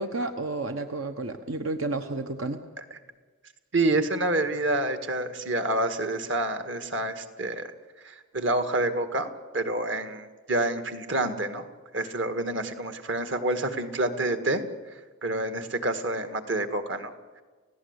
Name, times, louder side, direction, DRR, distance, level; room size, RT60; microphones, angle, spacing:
voice 1, 0.0-2.6, right 2 dB, 85° right, 6 dB, 1.1 m, -31 dB
voice 2, 3.7-7.7 8.0-11.7 11.9-14.6 15.2-17.1, right 2 dB, 65° right, 8 dB, 1.8 m, -28 dB
30.0 x 16.5 x 8.2 m, 1.4 s
head